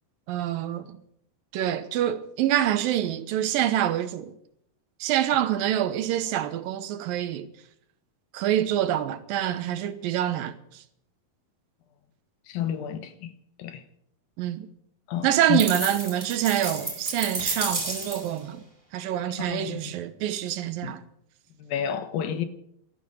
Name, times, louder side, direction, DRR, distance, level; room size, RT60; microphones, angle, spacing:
voice 1, 0.3-1.0 1.5-4.3 5.0-7.5 8.3-10.5 14.4-14.7 15.2-18.6 18.9-21.0, right 11 dB, 85° right, 2.7 m, -26 dB
voice 2, 12.5-13.3 13.6-13.8 15.1-15.7 19.4-19.9 20.8-21.0 21.6-22.5, left 9 dB, 80° left, 2.9 m, -30 dB
sound 1, 15.6-18.4, right 2 dB, 15° right, 5.2 m, -31 dB
16.0 x 13.0 x 6.5 m
omnidirectional pair, 4.1 m